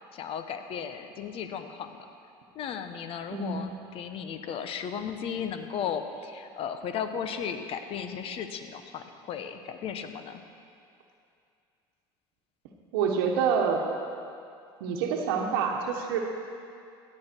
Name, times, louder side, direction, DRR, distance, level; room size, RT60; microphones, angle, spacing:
voice 1, 0.1-2.0 2.5-10.4, left 7 dB, 50° left, 8 dB, 1.0 m, -35 dB
voice 2, 3.3-3.6 12.9-13.8 14.8-16.2, right 6 dB, 85° right, 2 dB, 1.1 m, -27 dB
16.5 x 8.7 x 4.5 m, 2.4 s
supercardioid pair, 95°, 12 cm